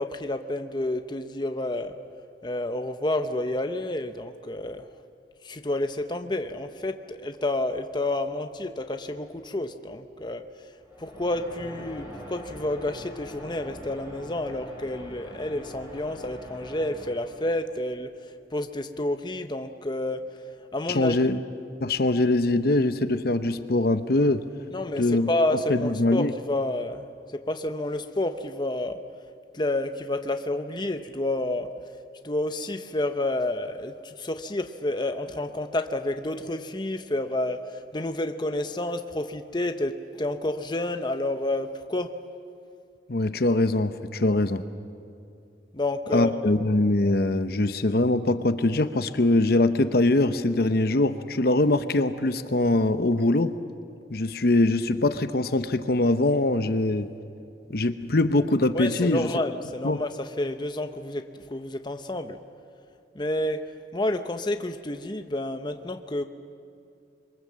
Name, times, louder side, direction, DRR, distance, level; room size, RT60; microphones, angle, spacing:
voice 1, 0.0-1.9 2.4-4.9 5.4-10.4 11.0-18.1 18.5-20.2 20.7-21.3 24.7-27.1 27.5-29.0 29.5-31.7 32.2-42.1 45.7-46.5 58.7-62.4 63.1-63.6 63.9-66.2, left 1 dB, 25° left, 7 dB, 0.8 m, -29 dB
sound 1, 10.8-17.7, equal, 15° right, 6.6 m, -43 dB
voice 2, 20.9-21.4 21.8-24.4 25.0-25.3 25.7-26.3 43.1-44.6 46.1-53.5 54.1-57.1 57.7-59.3 59.8-60.0, left 2 dB, 55° left, 10 dB, 0.9 m, -23 dB
26.0 x 23.0 x 7.5 m, 2.5 s
head